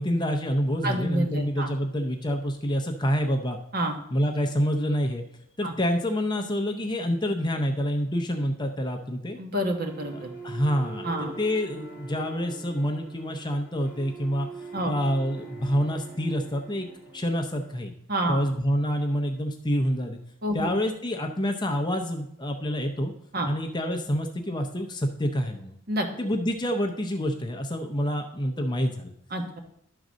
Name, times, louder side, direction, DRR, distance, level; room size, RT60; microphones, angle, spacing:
voice 1, 0.0-3.6 4.1-5.2 5.6-9.4 10.1-14.5 14.8-16.9 17.1-17.9 18.3-20.2 20.5-23.1 23.4-25.7 26.2-29.1, equal, 20° left, 4 dB, 0.6 m, -27 dB
voice 2, 0.8-1.7 3.7-4.0 5.6-5.7 9.4-10.3 11.0-11.3 14.7-14.9 18.1-18.4 20.4-20.7 23.3-23.5 25.9-26.1 29.3-29.6, right 1 dB, 40° right, 4 dB, 1.2 m, -28 dB
sound 1, 9.8-17.8, right 3 dB, 10° right, 1.3 m, -43 dB
11.5 x 3.9 x 6.2 m, 0.72 s
head